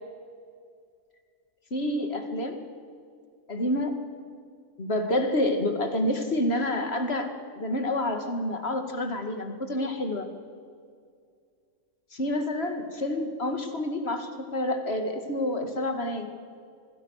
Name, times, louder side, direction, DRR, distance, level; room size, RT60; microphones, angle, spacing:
voice 1, 1.7-2.6 3.5-3.9 4.8-10.3 12.1-16.3, left 1 dB, 45° left, 6 dB, 2.5 m, -28 dB
26.5 x 20.5 x 6.6 m, 2.2 s
omnidirectional pair, 1.5 m